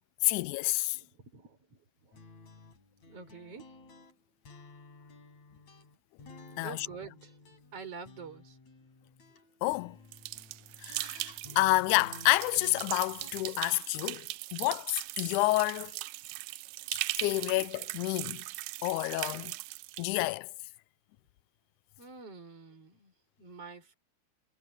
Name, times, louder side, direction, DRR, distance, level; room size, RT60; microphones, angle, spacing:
voice 1, 0.2-1.0 6.6-6.8 9.6-10.0 10.8-11.3 11.6-14.3 14.5-15.9 16.9-18.4 18.8-19.5 20.0-20.5, left 20 dB, 80° left, 2.0 m, -29 dB
voice 2, 0.9-2.2 3.1-3.8 6.6-7.3 7.7-8.6 22.0-23.9, right 5 dB, 45° right, 6.5 m, -47 dB
sound 1, 2.1-13.3, left 3 dB, 60° left, 5.9 m, -54 dB
sound 2, 10.1-20.0, right 19 dB, 80° right, 1.9 m, -39 dB
omnidirectional pair, 3.7 m